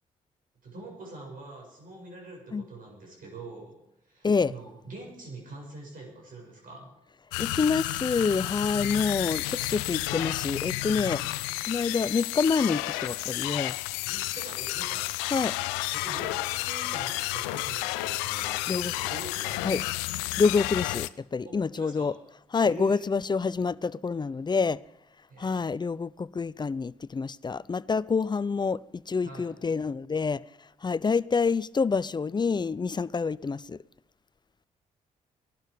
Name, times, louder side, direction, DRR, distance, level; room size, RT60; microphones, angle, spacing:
voice 1, 0.6-3.8 4.0-6.9 8.6-9.0 14.0-15.4 15.9-19.8 21.4-22.1 22.6-23.0 25.3-25.7 29.2-29.5, right 2 dB, 60° right, 7.2 m, -44 dB
sound 1, 7.3-21.1, left 19 dB, 85° left, 0.4 m, -31 dB
voice 2, 7.4-11.2 11.7-13.8 15.3-15.6 18.7-18.9 19.6-19.8 20.4-22.1 22.5-24.8 25.4-30.4 30.8-33.8, left 5 dB, 25° left, 0.5 m, -27 dB
19.0 x 12.0 x 5.1 m
hypercardioid pair, 45°, 16 cm